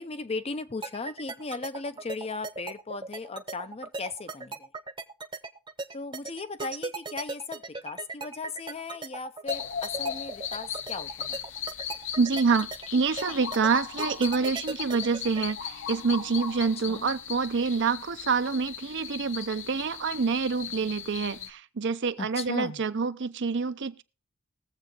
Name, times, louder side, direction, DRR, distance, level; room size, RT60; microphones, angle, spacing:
voice 1, 0.0-4.7 5.9-11.4 16.9-17.1 22.2-22.8, left 3 dB, 30° left, 0.6 m, -37 dB
sound 1, 0.8-15.5, right 3 dB, 25° right, 0.9 m, -37 dB
sound 2, 9.5-21.5, left 8 dB, 65° left, 0.9 m, -37 dB
voice 2, 12.2-24.0, right 5 dB, 60° right, 0.6 m, -27 dB
21.0 x 7.6 x 3.0 m
head